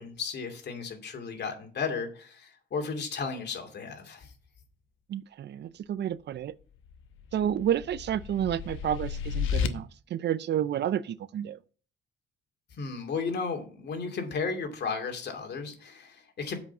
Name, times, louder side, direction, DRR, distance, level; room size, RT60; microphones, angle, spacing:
voice 1, 0.0-4.3 12.7-16.6, left 5 dB, 60° left, 2.5 m, -34 dB
voice 2, 5.1-6.5 7.3-11.6, right 10 dB, 60° right, 0.5 m, -30 dB
sound 1, 6.9-9.7, left 7 dB, 85° left, 1.0 m, -33 dB
8.0 x 5.2 x 7.1 m
cardioid pair, 90°, 20 cm